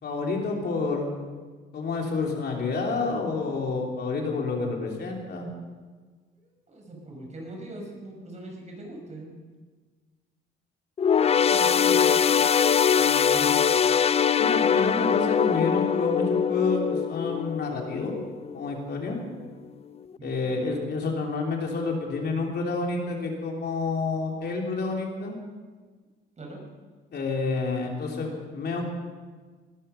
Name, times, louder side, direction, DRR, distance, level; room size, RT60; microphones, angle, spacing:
voice 1, 0.0-1.1 1.7-5.5 13.0-13.6 14.3-18.1 18.5-19.2 20.2-25.4 27.1-28.9, left 3 dB, 55° left, 0 dB, 3.2 m, -29 dB
voice 2, 6.7-9.4 11.4-12.2 20.2-20.6 26.4-26.6, right 1 dB, 35° right, 0 dB, 5.7 m, -41 dB
sound 1, 11.0-18.7 19.1-19.3 20.1-20.2, left 7 dB, 30° left, 0.4 m, -22 dB
20.0 x 12.0 x 5.8 m, 1.4 s
cardioid pair, 90°, 20 cm